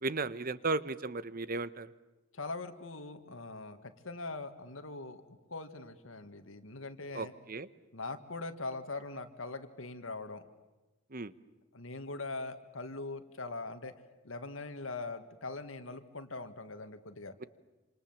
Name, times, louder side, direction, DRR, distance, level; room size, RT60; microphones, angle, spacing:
voice 1, 0.0-1.9 7.1-7.7 11.1-11.3, right 3 dB, 45° right, 15 dB, 1.0 m, -35 dB
voice 2, 2.3-7.3 7.9-10.4 11.7-13.9 14.2-17.3, left 3 dB, 80° left, 8 dB, 2.0 m, -42 dB
28.0 x 27.0 x 7.4 m, 1.1 s
head